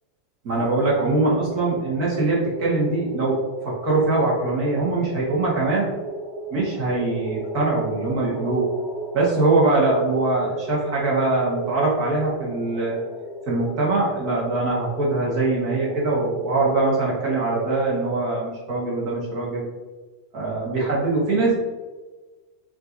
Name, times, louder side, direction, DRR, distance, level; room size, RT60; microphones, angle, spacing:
voice 1, 0.4-3.4 3.6-5.9 6.5-8.6 9.1-13.0 13.5-19.6 20.3-21.5, right 2 dB, 50° right, -5 dB, 1.5 m, -22 dB
sound 1, 0.8-17.9, right 2 dB, 5° right, 0.9 m, -35 dB
5.2 x 2.8 x 2.6 m, 1.3 s
supercardioid pair, 140°, 0 cm